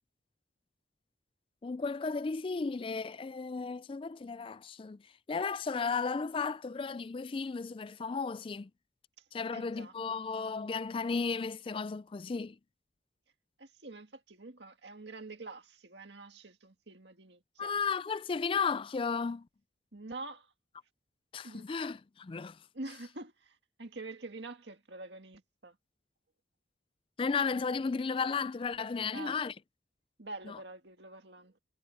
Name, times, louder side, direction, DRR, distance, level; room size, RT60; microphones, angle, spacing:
voice 1, 1.6-5.0 5.3-8.7 9.3-12.6 17.6-19.5 21.3-22.6 27.2-29.5 30.5-30.6, left 5 dB, 30° left, 0.3 m, -34 dB
voice 2, 9.5-9.9 13.6-17.8 19.9-20.5 21.4-21.7 22.7-25.8 29.1-29.4 30.2-31.6, right 2 dB, 70° right, 1.9 m, -46 dB
head